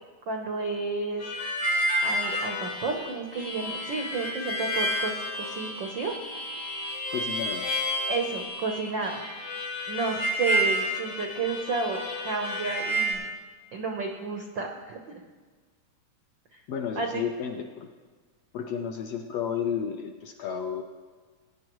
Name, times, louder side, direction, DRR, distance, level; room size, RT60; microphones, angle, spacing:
voice 1, 0.3-1.4 2.0-5.1 5.5-6.1 8.1-9.2 9.9-13.3 13.7-15.2 17.0-17.2, right 4 dB, 80° right, 2 dB, 1.0 m, -31 dB
Harmonica, 1.2-13.1, equal, 90° left, 4.3 m, -30 dB
voice 2, 7.1-7.7 16.7-17.9 18.5-20.8, left 7 dB, 75° left, 3 dB, 1.6 m, -32 dB
20.0 x 9.8 x 3.1 m, 1.4 s
omnidirectional pair, 3.5 m